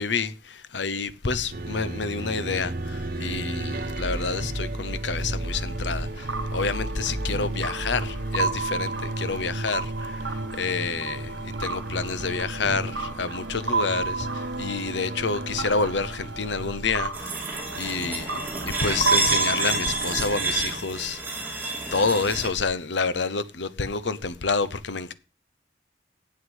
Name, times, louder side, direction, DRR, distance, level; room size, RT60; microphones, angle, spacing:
voice 1, 0.0-9.9 10.6-21.2 21.9-25.1, left 4 dB, 75° left, 0.9 m, -28 dB
sound 1, 1.5-17.1, right 2 dB, 50° right, 1.1 m, -33 dB
sound 2, 5.5-20.4, right 4 dB, 80° right, 1.1 m, -33 dB
sound 3, 17.1-22.5, right 3 dB, 10° right, 2.5 m, -28 dB
8.1 x 8.0 x 8.0 m
head